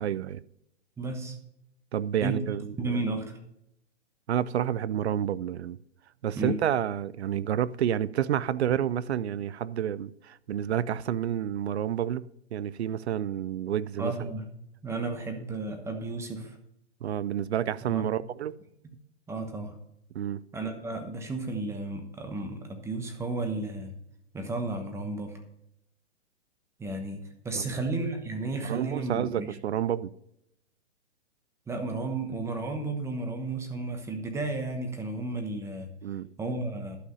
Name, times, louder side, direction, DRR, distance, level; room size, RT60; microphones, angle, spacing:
voice 1, 0.0-0.4 1.9-2.7 4.3-5.8 6.2-14.1 17.0-18.5 20.1-20.4 27.5-27.8 28.6-30.1 36.0-36.3, right 10 dB, 65° right, 0.5 m, -29 dB
voice 2, 1.0-1.3 2.2-2.4 2.8-3.4 6.3-6.6 14.0-14.5 14.8-16.6 17.9-18.0 19.3-19.7 20.5-23.9 24.3-25.4 26.8-29.5 31.7-35.9 36.4-37.0, right 2 dB, 10° right, 1.1 m, -33 dB
11.5 x 5.7 x 5.4 m
hypercardioid pair, 135°, 35 cm